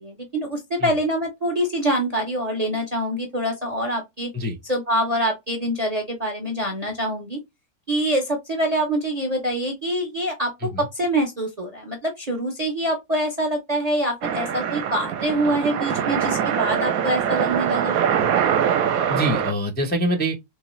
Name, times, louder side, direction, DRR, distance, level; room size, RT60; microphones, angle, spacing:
voice 1, 0.0-4.3 4.7-7.4 7.9-17.9, right 1 dB, 45° right, 0.5 m, -25 dB
sound 1, 14.2-19.5, right 8 dB, 75° right, 1.0 m, -23 dB
voice 2, 19.1-20.5, equal, 15° left, 0.3 m, -25 dB
3.7 x 3.2 x 3.0 m
omnidirectional pair, 1.6 m